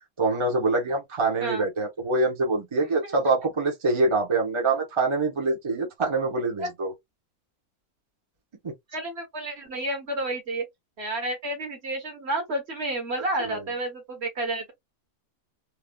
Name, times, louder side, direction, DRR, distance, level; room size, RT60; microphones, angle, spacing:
voice 1, 0.2-6.9 13.4-13.6, right 3 dB, 25° right, 0.8 m, -25 dB
voice 2, 8.9-10.6 11.0-14.7, right 1 dB, 50° right, 1.2 m, -30 dB
3.2 x 2.3 x 2.2 m
omnidirectional pair, 1.6 m